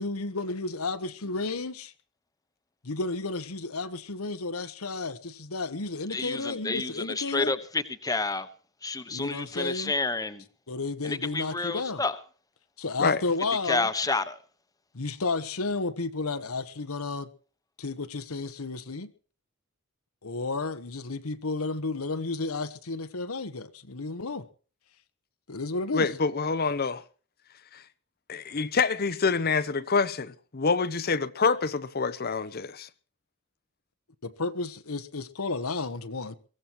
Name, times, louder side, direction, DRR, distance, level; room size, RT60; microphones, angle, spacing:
voice 1, 0.0-1.9 2.8-7.5 9.1-9.9 10.7-12.0 12.8-13.9 14.9-17.3 17.8-19.1 20.2-24.5 25.5-26.1 34.2-36.3, left 3 dB, 85° left, 1.2 m, -32 dB
voice 2, 6.1-8.5 8.8-10.4 11.0-12.2 13.6-14.4, left 3 dB, 15° left, 1.1 m, -29 dB
voice 3, 25.9-27.0 28.3-32.9, left 4 dB, 45° left, 0.8 m, -26 dB
23.0 x 15.5 x 3.1 m
head